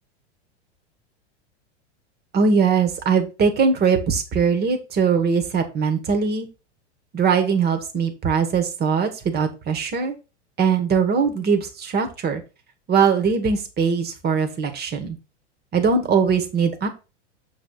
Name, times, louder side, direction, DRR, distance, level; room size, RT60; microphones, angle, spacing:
voice 1, 2.3-6.5 7.1-10.1 10.6-12.4 12.9-15.2 15.7-16.9, right 5 dB, 25° right, 6 dB, 1.5 m, -21 dB
6.9 x 3.3 x 5.5 m, 0.30 s
hypercardioid pair, 100°, 36 cm